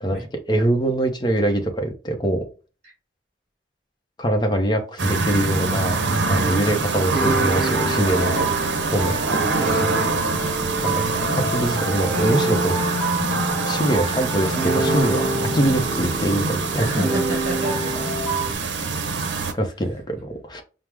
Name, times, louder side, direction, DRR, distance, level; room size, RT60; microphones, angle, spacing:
voice 1, 0.5-2.4 4.2-8.3 8.9-9.1 9.6-9.8 10.8-12.8 13.7-17.1 19.5-20.6, right 1 dB, 25° left, 0.6 m, -23 dB
sound 1, 5.0-19.5, right 3 dB, 80° right, 0.6 m, -24 dB
sound 2, 7.1-18.5, right 2 dB, 5° left, 0.9 m, -27 dB
voice 2, 16.8-17.9, right 1 dB, 35° right, 1.4 m, -31 dB
4.6 x 2.0 x 3.4 m
head